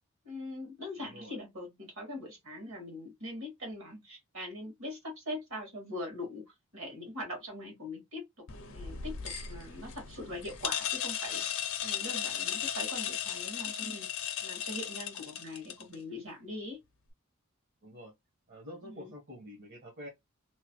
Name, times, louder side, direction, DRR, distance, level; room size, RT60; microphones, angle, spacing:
voice 1, 0.2-8.4 8.7-16.8 18.8-19.1, left 1 dB, 65° right, 1.7 m, -42 dB
voice 2, 0.9-1.4 17.8-18.1 18.5-20.1, equal, 50° right, 1.1 m, -47 dB
sound 1, 8.5-15.9, left 9 dB, 65° left, 0.6 m, -36 dB
3.1 x 2.2 x 3.0 m
head